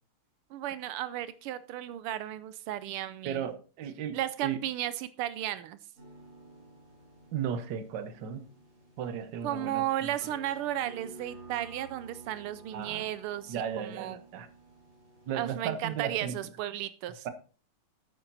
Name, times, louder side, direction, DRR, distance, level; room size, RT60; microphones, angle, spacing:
voice 1, 0.5-3.4 4.1-5.8 9.4-14.2 15.3-17.3, right 12 dB, 85° right, 15 dB, 1.6 m, -34 dB
voice 2, 3.2-4.6 7.3-8.4 9.0-9.8 12.7-13.1 13.5-14.5 15.3-16.4 17.2-17.3, right 8 dB, 60° right, 11 dB, 1.5 m, -35 dB
sound 1, 6.0-16.1, right 3 dB, 35° right, 4.8 m, -53 dB
10.0 x 8.9 x 4.0 m, 0.36 s
omnidirectional pair, 2.4 m